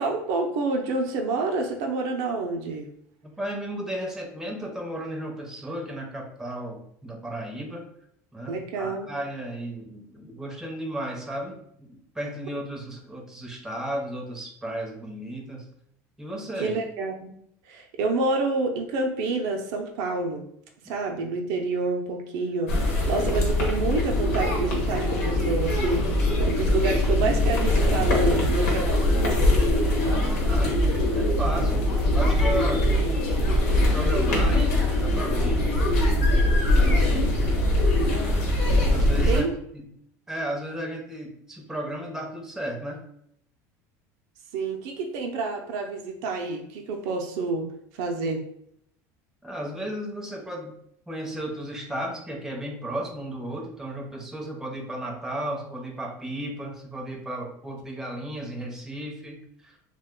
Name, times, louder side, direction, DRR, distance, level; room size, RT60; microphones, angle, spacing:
voice 1, 0.0-2.9 8.5-9.1 16.6-17.3 17.6-20.5 20.8-28.9 39.3-39.6 44.5-48.5, right 3 dB, 70° right, 3 dB, 0.5 m, -28 dB
voice 2, 3.2-7.9 8.3-15.7 16.2-16.7 30.5-30.7 31.2-32.9 33.7-35.7 38.9-39.4 39.7-39.9 40.3-43.0 49.4-50.7 51.1-59.8, right 1 dB, 5° right, 1 dB, 0.6 m, -34 dB
sound 1, 22.7-39.4, left 1 dB, 85° left, 1.0 m, -22 dB
2.4 x 2.2 x 3.6 m, 0.71 s
supercardioid pair, 110°, 8 cm